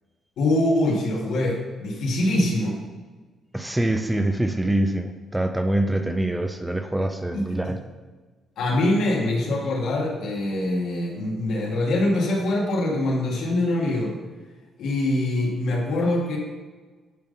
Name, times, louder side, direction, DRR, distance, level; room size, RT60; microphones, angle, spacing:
voice 1, 0.4-2.8 7.3-7.8 8.6-14.1 14.8-16.4, left 1 dB, 80° left, -2 dB, 1.9 m, -24 dB
voice 2, 3.5-7.8, right 1 dB, 10° right, 6 dB, 0.6 m, -24 dB
10.5 x 3.7 x 5.5 m, 1.3 s
cardioid pair, 90°, 0 cm